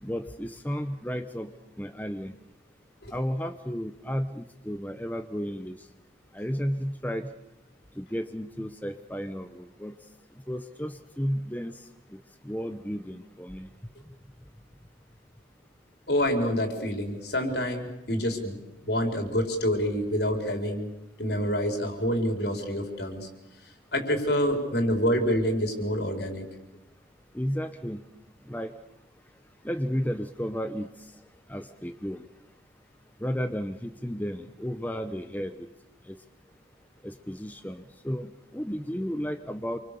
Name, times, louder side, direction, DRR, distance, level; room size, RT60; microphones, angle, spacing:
voice 1, 0.0-1.5 1.8-2.3 3.1-5.8 6.3-7.3 8.0-9.9 10.5-11.7 12.1-12.2 12.4-13.7 27.3-28.0 28.5-28.7 29.6-30.9 31.5-32.2 33.2-35.5 36.1-36.2 37.0-39.8, equal, 10° left, 7 dB, 0.9 m, -33 dB
voice 2, 16.1-18.6 18.8-20.9 21.2-23.3 23.9-26.5, equal, 65° left, 4 dB, 4.6 m, -27 dB
28.0 x 24.0 x 7.0 m, 0.96 s
head